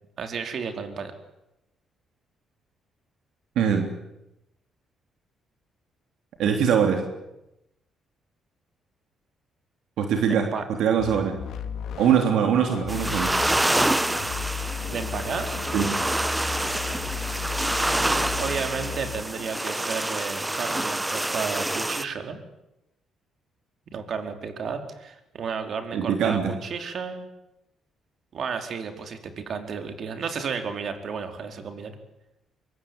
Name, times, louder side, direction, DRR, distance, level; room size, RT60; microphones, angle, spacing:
voice 1, 0.2-1.1 10.3-10.7 14.9-15.6 18.0-22.4 23.9-27.3 28.3-31.9, right 6 dB, 60° right, 6 dB, 4.5 m, -32 dB
voice 2, 3.5-3.9 6.4-7.1 10.0-10.5 10.8-11.4 12.0-13.3 15.7-16.0 25.9-26.5, right 7 dB, 80° right, 4 dB, 3.4 m, -22 dB
sound 1, 11.0-19.2, left 7 dB, 75° left, 2.5 m, -35 dB
sound 2, 12.9-22.0, right 1 dB, 10° right, 1.3 m, -27 dB
25.0 x 23.5 x 9.8 m, 0.91 s
cardioid pair, 90°, 0 cm